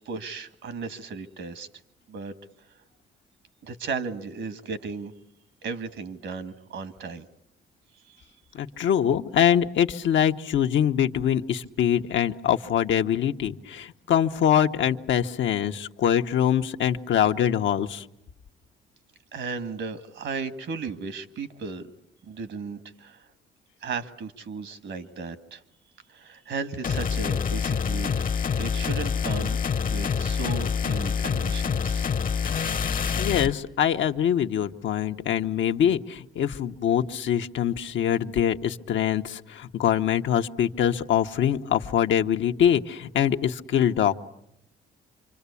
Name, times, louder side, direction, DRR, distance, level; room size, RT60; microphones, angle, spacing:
voice 1, 0.1-1.7 2.1-2.3 3.6-5.1 5.6-7.3 8.1-8.2 19.3-21.9 22.2-23.3 23.8-25.6 26.1-28.3 28.6-32.1, right 4 dB, 70° right, 11 dB, 1.8 m, -35 dB
voice 2, 8.5-18.0 33.2-44.2, left 9 dB, 70° left, 6 dB, 1.1 m, -24 dB
sound 1, 26.8-33.5, left 6 dB, 45° left, 1.0 m, -26 dB
27.0 x 25.0 x 8.4 m, 0.77 s
cardioid pair, 90°, 20 cm